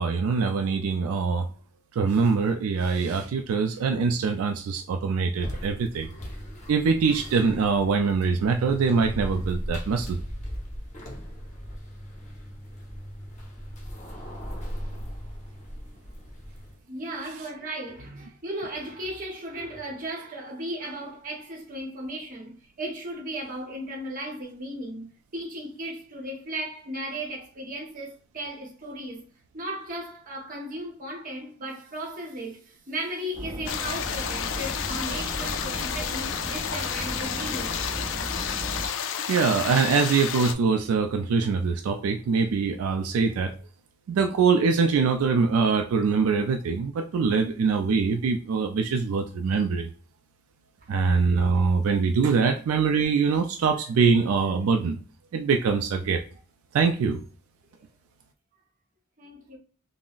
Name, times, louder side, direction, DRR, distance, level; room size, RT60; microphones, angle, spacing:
voice 1, 0.0-1.5 1.9-6.1 6.7-10.2 39.3-43.5 44.1-49.9 50.9-55.0 55.3-56.2 56.7-57.2, right 5 dB, 80° right, 0.3 m, -23 dB
sound 1, 5.4-16.8, equal, 35° left, 0.7 m, -37 dB
voice 2, 16.9-29.2 29.5-37.8 59.2-59.6, right 1 dB, 40° right, 0.9 m, -36 dB
sound 2, 33.3-38.9, equal, 20° right, 0.6 m, -36 dB
sound 3, 33.7-40.5, left 8 dB, 60° left, 0.3 m, -31 dB
3.7 x 2.0 x 2.4 m
head